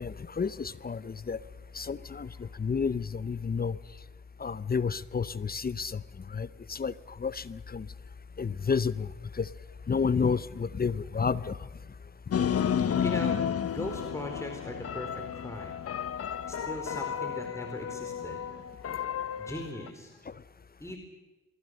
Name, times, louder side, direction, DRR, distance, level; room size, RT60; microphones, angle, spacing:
voice 1, 0.0-1.4 1.7-2.3 2.6-3.8 4.4-6.0 6.3-6.9 7.2-7.9 8.4-9.1 9.4-9.5 9.9-11.6, left 5 dB, 30° left, 18 dB, 0.8 m, -30 dB
sound 1, 12.3-19.9, left 8 dB, 50° left, 1.0 m, -32 dB
voice 2, 13.0-13.4 13.7-15.8 16.5-20.1 20.8-21.0, equal, 10° left, 3 dB, 4.4 m, -40 dB
24.0 x 23.0 x 6.5 m, 1.2 s
supercardioid pair, 50°, 30 cm